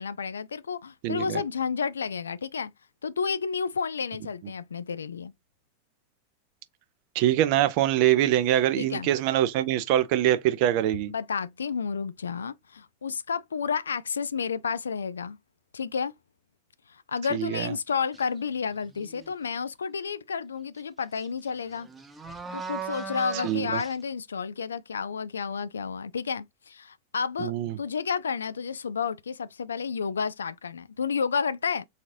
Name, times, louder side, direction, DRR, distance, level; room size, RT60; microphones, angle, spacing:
voice 1, 0.0-2.7 3.0-5.3 8.8-9.1 11.1-15.4 15.7-16.1 17.1-21.9 22.5-27.5 27.8-31.8, left 6 dB, 70° left, 0.3 m, -31 dB
voice 2, 1.0-1.4 7.1-11.1 17.3-17.7 23.4-23.8 27.4-27.7, right 12 dB, 45° right, 0.6 m, -24 dB
sound 1, 18.1-18.4 18.8-19.5 20.8-20.9 21.2-24.0, right 5 dB, 10° right, 0.8 m, -39 dB
4.0 x 2.8 x 2.6 m
figure-of-eight pair, 90°, 0 cm